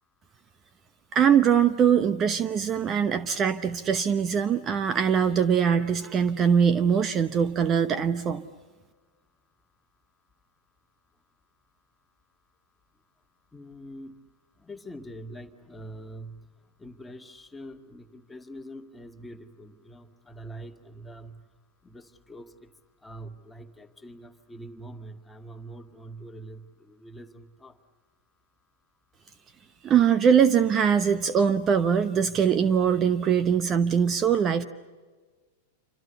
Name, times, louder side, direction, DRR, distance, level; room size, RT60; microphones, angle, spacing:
voice 1, 1.1-8.5 29.8-34.6, right 7 dB, 30° right, 12 dB, 0.9 m, -22 dB
voice 2, 13.5-14.1 14.6-16.4 16.8-21.4 21.8-22.5 23.0-27.7, right 1 dB, 10° left, 3 dB, 2.1 m, -44 dB
28.0 x 26.0 x 6.9 m, 1.4 s
hypercardioid pair, 100°, 0 cm